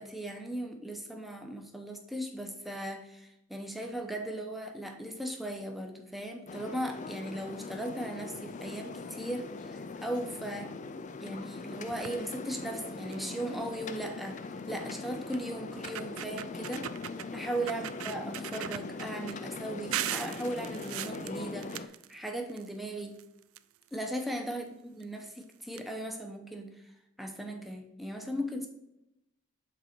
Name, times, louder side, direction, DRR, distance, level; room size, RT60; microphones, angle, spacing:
voice 1, 0.0-10.7 11.2-14.4 14.7-16.9 17.3-23.2 23.9-24.6 25.0-26.7 27.2-28.7, right 1 dB, ahead, 3 dB, 0.8 m, -37 dB
sound 1, 6.5-21.9, left 3 dB, 35° left, 0.4 m, -41 dB
sound 2, 11.9-12.3 12.8-12.9 13.1-13.4 14.6-14.7 15.3-15.4 15.7-17.3 17.7-19.3 19.9-22.7 23.0-24.1 25.0-25.1 25.4-25.5 25.7-25.8, right 12 dB, 80° right, 0.3 m, -39 dB
7.6 x 4.1 x 4.3 m, 0.87 s
head